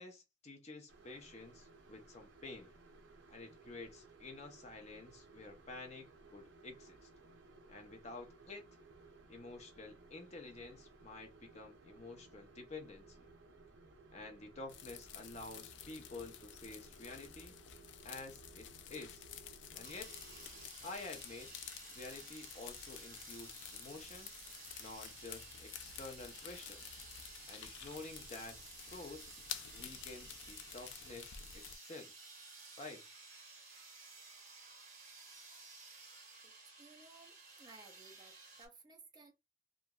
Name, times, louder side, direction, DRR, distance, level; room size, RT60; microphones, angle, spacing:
voice 1, 0.0-2.7 3.3-7.1 7.7-8.6 9.3-13.3 14.1-17.6 18.0-19.2 19.7-20.1 20.8-21.5 21.9-24.3 24.8-26.8 27.5-28.5 28.9-29.2 29.7-32.1 32.8-33.0, left 3 dB, 35° left, 0.6 m, -50 dB
sound 1, 0.9-20.7, right 3 dB, 80° right, 0.6 m, -60 dB
sound 2, 14.7-31.8, left 9 dB, 75° left, 0.4 m, -51 dB
sound 3, 19.8-38.7, right 3 dB, 40° right, 1.6 m, -55 dB
voice 2, 36.4-39.3, right 3 dB, 25° right, 0.5 m, -59 dB
2.9 x 2.4 x 2.3 m
head